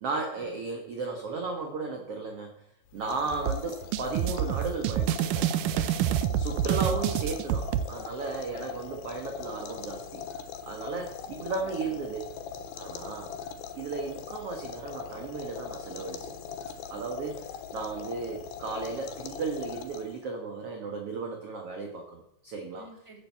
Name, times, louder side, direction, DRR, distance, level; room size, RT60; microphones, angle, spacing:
voice 1, 0.0-2.6 2.9-5.5 6.4-10.2 10.6-12.3 12.8-13.3 13.8-16.3 16.9-22.9, right 4 dB, 50° right, 3 dB, 2.1 m, -35 dB
sound 1, 2.9-20.3, left 7 dB, 85° left, 3.1 m, -41 dB
voice 2, 3.0-3.4 5.8-6.4 11.5-12.2 22.8-23.2, right 2 dB, 10° right, 1 dB, 3.0 m, -53 dB
sound 2, 3.5-7.9, right 10 dB, 75° right, 2.0 m, -27 dB
13.5 x 9.2 x 8.4 m, 0.76 s
omnidirectional pair, 4.2 m